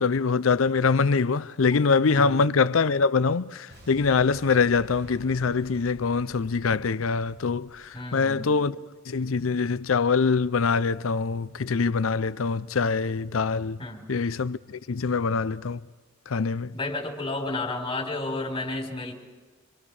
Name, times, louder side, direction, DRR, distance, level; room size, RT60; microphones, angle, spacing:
voice 1, 0.0-8.7 9.1-13.8 14.1-15.8 16.3-16.7, left 5 dB, 85° left, 0.6 m, -24 dB
Boom, 3.7-8.6, equal, 55° right, 6.4 m, -50 dB
voice 2, 7.9-8.4 13.8-14.1 16.7-19.1, left 2 dB, 25° left, 4.2 m, -31 dB
27.0 x 25.0 x 4.9 m
head